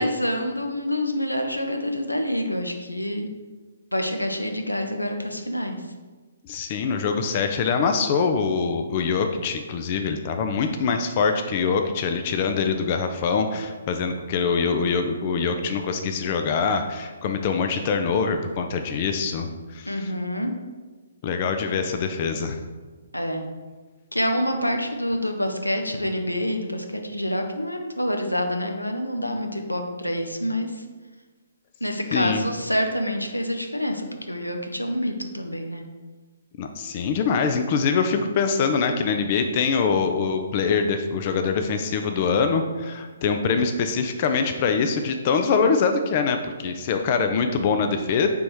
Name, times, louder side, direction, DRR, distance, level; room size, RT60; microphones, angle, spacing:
voice 1, 0.0-3.3 3.9-5.8 19.9-20.5 23.1-23.4 24.1-30.8 31.8-35.8, equal, 90° left, 4 dB, 0.5 m, -27 dB
voice 2, 6.4-20.1 21.2-22.6 32.1-32.4 36.6-48.3, left 5 dB, 35° left, 6 dB, 0.3 m, -24 dB
3.5 x 3.0 x 4.6 m, 1.3 s
figure-of-eight pair, 130°, 0 cm